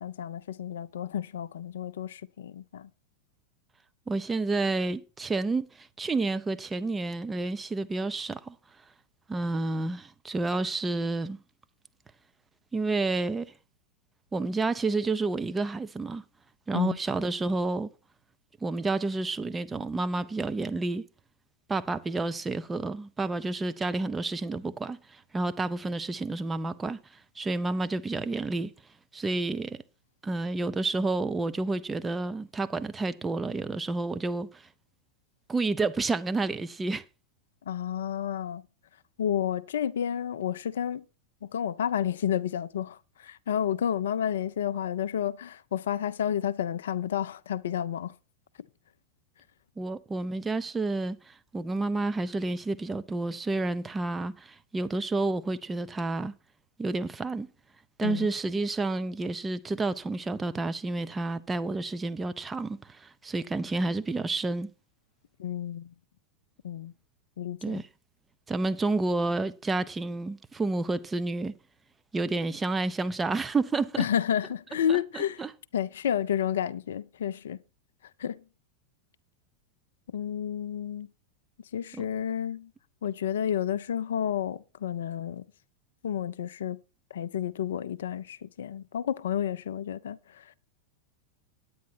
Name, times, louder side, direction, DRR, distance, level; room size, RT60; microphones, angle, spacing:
voice 1, 0.0-2.9 16.7-17.0 37.7-38.6 39.2-41.0 41.5-48.1 58.0-58.3 65.4-65.9 66.6-66.9 67.4-67.8 74.0-75.4 75.7-77.6 78.2-78.4 80.1-81.1 81.7-82.7 83.0-85.4 86.0-86.8 87.1-90.6, left 9 dB, 60° left, 0.5 m, -31 dB
voice 2, 4.1-8.6 9.3-11.4 12.7-13.5 14.3-16.2 16.7-17.9 18.6-21.1 21.7-28.7 29.1-29.8 30.2-34.7 35.5-37.0 49.8-56.3 56.8-57.5 58.0-64.7 67.6-67.9 68.5-71.5 72.1-74.1 74.9-75.5 81.9-82.0, right 3 dB, 15° right, 0.6 m, -30 dB
9.4 x 9.3 x 4.5 m
figure-of-eight pair, 90°, 0 cm